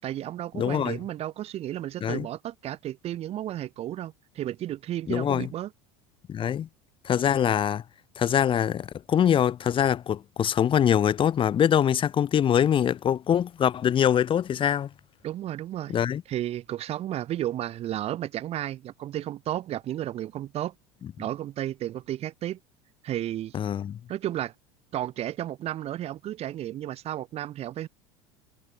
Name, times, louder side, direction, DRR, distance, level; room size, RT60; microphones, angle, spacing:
voice 1, 0.0-5.7 15.2-16.0 16.3-20.7 21.2-22.6 23.0-23.5 24.1-24.5 24.9-27.9, right 12 dB, 45° right, 4.9 m, -33 dB
voice 2, 0.5-1.0 2.0-2.3 5.1-5.5 6.3-6.7 7.0-7.8 8.2-14.9 15.9-16.2 23.5-24.0, left 9 dB, 35° left, 7.8 m, -23 dB
supercardioid pair, 100°, 14 cm